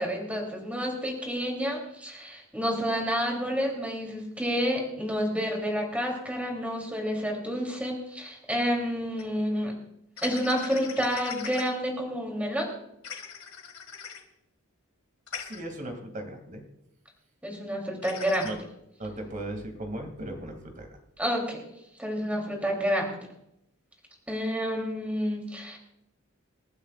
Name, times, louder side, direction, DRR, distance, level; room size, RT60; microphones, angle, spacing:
voice 1, 0.0-9.7 10.2-12.7 17.4-18.5 21.2-21.6 22.0-23.1 24.3-25.8, equal, 5° right, 0 dB, 3.3 m, -29 dB
sound 1, 9.2-9.3 10.2-11.7 13.0-14.2 15.3-15.6 18.0-18.5, left 7 dB, 80° left, 2.2 m, -40 dB
voice 2, 15.4-16.6 18.4-18.6 19.0-20.9, right 1 dB, 35° right, 4 dB, 2.6 m, -37 dB
28.0 x 12.0 x 2.5 m, 0.80 s
head